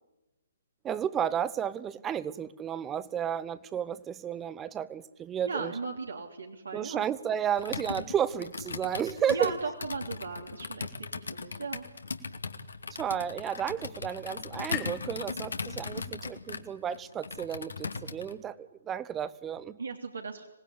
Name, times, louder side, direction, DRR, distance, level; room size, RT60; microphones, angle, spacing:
voice 1, 0.8-5.7 6.7-9.5 13.0-19.8, right 9 dB, 15° right, 17 dB, 0.9 m, -32 dB
voice 2, 5.4-7.0 9.3-11.8 19.8-20.5, right 4 dB, 70° right, 2 dB, 3.2 m, -37 dB
Computer keyboard, 7.6-18.4, left 4 dB, 65° left, 2.2 m, -38 dB
sound 1, 12.3-16.1, left 12 dB, 25° left, 2.3 m, -46 dB
26.0 x 19.5 x 9.9 m, 0.99 s
figure-of-eight pair, 130°, 0 cm